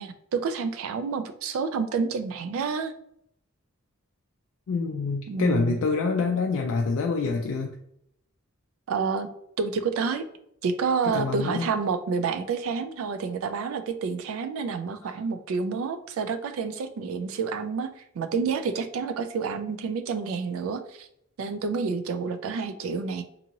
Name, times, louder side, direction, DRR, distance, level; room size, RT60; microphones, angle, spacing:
voice 1, 0.0-2.9 5.3-5.8 8.9-9.3 9.6-10.3 10.6-17.9 18.2-21.1 21.4-23.2, right 5 dB, 70° right, 9 dB, 0.3 m, -29 dB
voice 2, 4.7-7.7 11.0-11.7, left 4 dB, 65° left, 1 dB, 0.3 m, -26 dB
2.8 x 2.7 x 2.6 m, 0.74 s
head